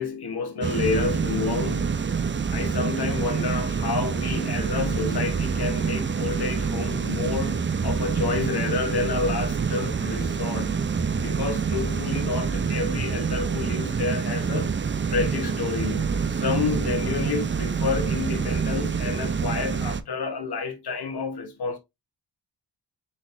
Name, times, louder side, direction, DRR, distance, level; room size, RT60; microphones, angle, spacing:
voice 1, 0.0-2.0 2.5-10.8 11.2-21.8, left 4 dB, 60° left, 1.3 m, -29 dB
sound 1, 0.6-20.0, right 6 dB, 30° right, 0.4 m, -26 dB
4.2 x 3.9 x 2.6 m
cardioid pair, 65°, 43 cm